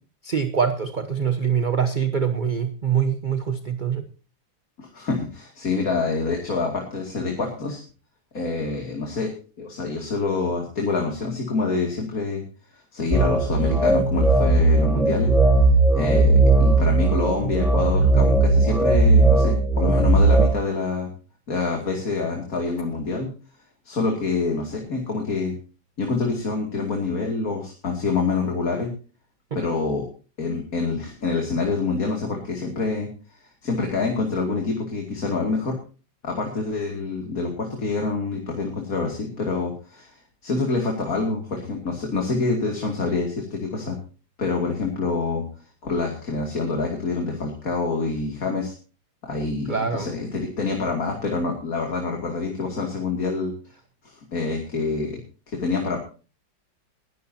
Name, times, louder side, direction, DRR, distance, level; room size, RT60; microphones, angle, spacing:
voice 1, 0.2-4.0 29.5-29.6 49.7-50.1, right 7 dB, 35° right, 8 dB, 0.9 m, -24 dB
voice 2, 4.8-7.8 8.3-12.4 12.7-15.3 15.9-21.1 21.5-23.3 23.8-25.5 26.0-28.9 29.5-30.1 30.4-35.8 36.2-44.0 44.4-45.4 45.8-48.7 49.3-53.5 54.0-55.2 55.5-56.0, left 4 dB, 45° left, 1 dB, 2.9 m, -26 dB
sound 1, 13.1-20.5, right 2 dB, ahead, 4.0 m, -17 dB
20.5 x 12.0 x 2.8 m, 0.35 s
omnidirectional pair, 2.1 m